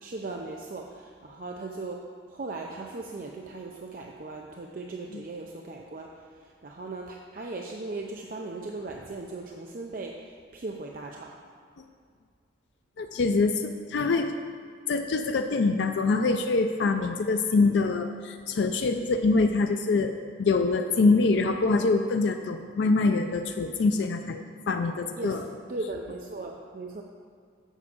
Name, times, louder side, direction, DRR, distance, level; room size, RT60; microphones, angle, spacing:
voice 1, 0.0-2.0 2.3-11.4 25.2-25.4 25.7-27.0, right 3 dB, 45° right, 0 dB, 0.4 m, -38 dB
voice 2, 13.0-14.3 14.9-25.5, left 3 dB, 70° left, 5 dB, 0.4 m, -25 dB
7.2 x 4.7 x 6.8 m, 2.1 s
head